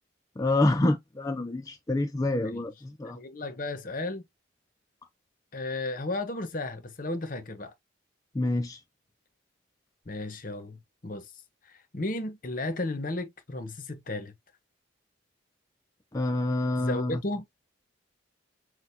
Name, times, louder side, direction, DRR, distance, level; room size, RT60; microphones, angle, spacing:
voice 1, 0.4-3.2 8.3-8.8 16.1-17.2, left 2 dB, 15° left, 0.3 m, -27 dB
voice 2, 3.0-4.3 5.5-7.7 10.1-11.3 11.7-14.3 16.8-17.5, left 2 dB, 40° left, 1.0 m, -34 dB
6.1 x 2.1 x 2.7 m
head